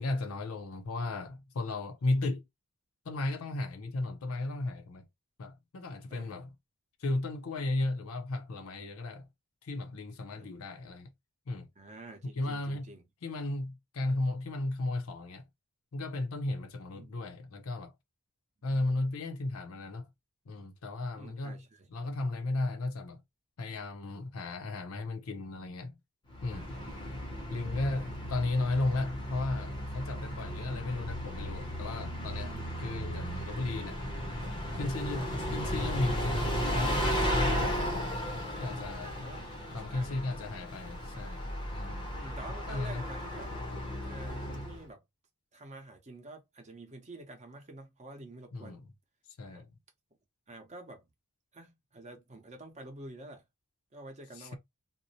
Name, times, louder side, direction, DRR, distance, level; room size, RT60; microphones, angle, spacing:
voice 1, 0.0-2.4 3.1-5.1 5.4-6.5 7.0-9.3 9.6-11.1 11.5-11.7 12.4-12.9 13.2-15.4 15.9-17.9 18.6-20.1 20.5-21.6 21.9-23.2 23.6-26.0 26.4-26.7 27.5-32.5 32.8-34.0 34.7-38.1 38.6-39.3 39.7-42.2 42.7-43.1 48.5-48.8 49.4-49.7 54.4-54.6, left 2 dB, 70° left, 0.5 m, -35 dB
voice 2, 11.8-13.0 16.9-17.1 18.7-19.0 21.2-22.1 26.5-26.8 27.7-28.1 32.4-32.7 38.9-40.2 40.4-40.5 42.2-43.6 44.0-45.0 45.5-48.8 49.4-49.6 50.5-51.1 51.5-53.4 53.9-54.6, right 2 dB, 30° right, 0.7 m, -49 dB
Bus, 26.3-44.9, equal, 20° left, 0.6 m, -35 dB
2.6 x 2.0 x 2.7 m
head